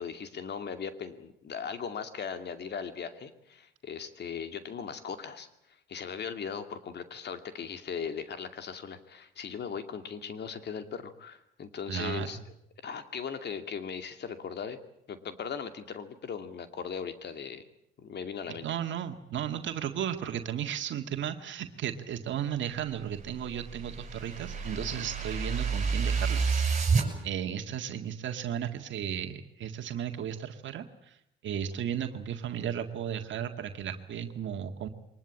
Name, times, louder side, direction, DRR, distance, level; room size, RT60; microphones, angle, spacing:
voice 1, 0.0-12.4 12.8-14.8 15.1-17.6 18.0-18.7, left 6 dB, 60° left, 9 dB, 2.4 m, -38 dB
voice 2, 11.9-12.4 18.6-26.6 27.2-31.2 31.4-34.9, right 9 dB, 70° right, 5 dB, 1.9 m, -35 dB
sound 1, 23.0-27.1, right 5 dB, 35° right, 6.1 m, -29 dB
23.5 x 20.0 x 8.7 m, 0.77 s
cardioid pair, 90°, 20 cm